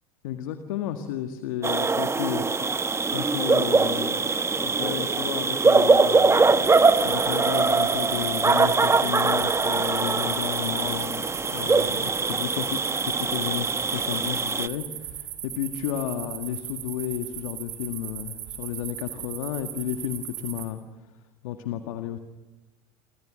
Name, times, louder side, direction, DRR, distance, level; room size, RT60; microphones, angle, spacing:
voice 1, 0.2-20.8 21.4-22.2, left 11 dB, 70° left, 7 dB, 1.9 m, -33 dB
sound 1, 1.6-14.7, right 4 dB, 15° right, 1.1 m, -22 dB
sound 2, 4.5-13.4, left 4 dB, 45° left, 7.0 m, -52 dB
sound 3, 6.6-20.6, right 12 dB, 50° right, 5.1 m, -38 dB
29.0 x 26.0 x 6.4 m, 1.1 s
hypercardioid pair, 80°, 18 cm